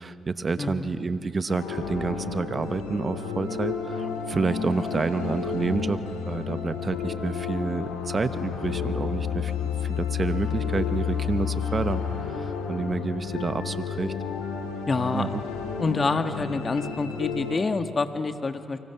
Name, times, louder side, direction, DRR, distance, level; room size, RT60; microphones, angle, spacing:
voice 1, 0.0-6.0 6.3-14.1 15.1-15.4, right 4 dB, 40° right, 11 dB, 1.2 m, -29 dB
voice 2, 0.6-0.9 14.9-15.3 15.8-18.8, left 3 dB, 40° left, 8 dB, 1.4 m, -27 dB
sound 1, 1.5-17.6, left 7 dB, 90° left, 1.8 m, -31 dB
29.0 x 25.0 x 5.8 m, 2.6 s
hypercardioid pair, 45°, 0 cm